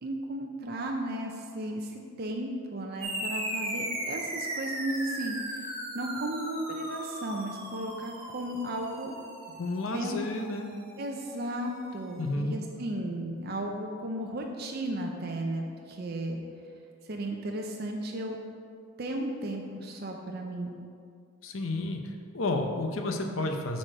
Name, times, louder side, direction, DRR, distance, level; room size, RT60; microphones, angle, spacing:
voice 1, 0.0-5.7 5.9-9.2 9.9-10.2 11.0-16.4 17.0-18.4 19.0-20.8, right 1 dB, 45° right, 1 dB, 0.6 m, -35 dB
sound 1, 3.0-11.9, right 1 dB, 30° right, 1.9 m, -38 dB
voice 2, 9.6-10.7 12.2-12.5 21.4-23.8, left 2 dB, 70° left, 4 dB, 0.7 m, -31 dB
7.6 x 4.3 x 6.4 m, 2.2 s
head